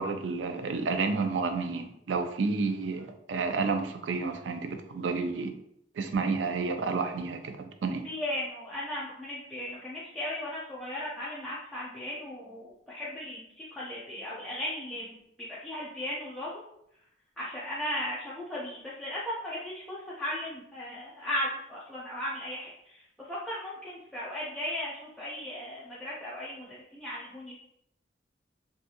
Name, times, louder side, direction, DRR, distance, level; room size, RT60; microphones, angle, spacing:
voice 1, 0.0-5.5 6.0-8.0, right 4 dB, 85° right, 7 dB, 0.4 m, -30 dB
voice 2, 8.0-16.6 17.4-27.6, left 1 dB, 5° left, -9 dB, 0.4 m, -36 dB
2.6 x 2.3 x 2.8 m, 0.75 s
head